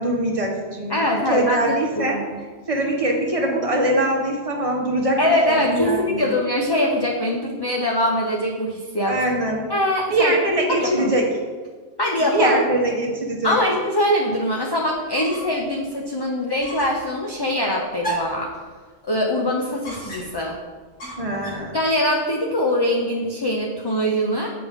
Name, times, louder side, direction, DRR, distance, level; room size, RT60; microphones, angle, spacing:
voice 1, 0.0-2.2 2.7-6.3 9.0-9.6 10.1-11.2 12.3-13.6 21.2-21.8, right 1 dB, 30° right, 0 dB, 1.1 m, -22 dB
voice 2, 0.9-1.8 2.1-2.2 5.2-9.1 9.7-10.3 10.7-11.1 12.0-12.6 13.4-18.5 19.0-20.5 21.7-24.5, left 1 dB, 30° left, -1 dB, 0.5 m, -22 dB
sound 1, 15.1-15.6 16.0-16.1 16.6-17.0 18.0-18.5 19.8-20.5 21.0-21.7, right 2 dB, 85° left, 2.2 m, -33 dB
7.7 x 5.3 x 3.6 m, 1.4 s
omnidirectional pair, 1.1 m